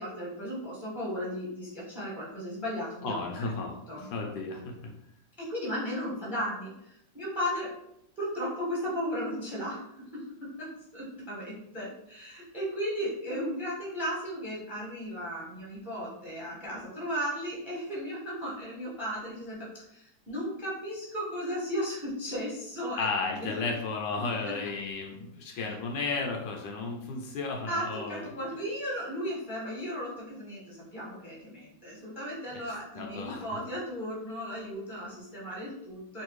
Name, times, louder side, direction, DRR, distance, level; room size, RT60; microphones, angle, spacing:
voice 1, 0.0-3.5 3.9-4.1 5.4-7.7 8.2-23.1 23.4-23.7 24.5-24.6 25.5-25.6 27.7-36.2, equal, ahead, -6 dB, 0.8 m, -35 dB
voice 2, 3.0-4.7 23.0-28.3 32.5-33.5, left 4 dB, 75° left, 1 dB, 1.2 m, -34 dB
3.3 x 2.6 x 3.1 m, 0.79 s
omnidirectional pair, 2.1 m